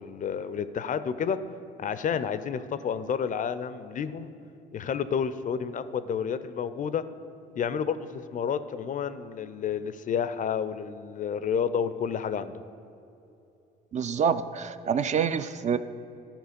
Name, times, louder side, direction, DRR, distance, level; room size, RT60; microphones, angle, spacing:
voice 1, 0.0-1.4 1.8-4.3 4.7-7.0 7.6-12.6, left 7 dB, 40° left, 13 dB, 0.4 m, -30 dB
voice 2, 13.9-15.8, right 7 dB, 35° right, 11 dB, 0.4 m, -26 dB
12.0 x 4.4 x 5.1 m, 2.8 s
supercardioid pair, 75°, 20 cm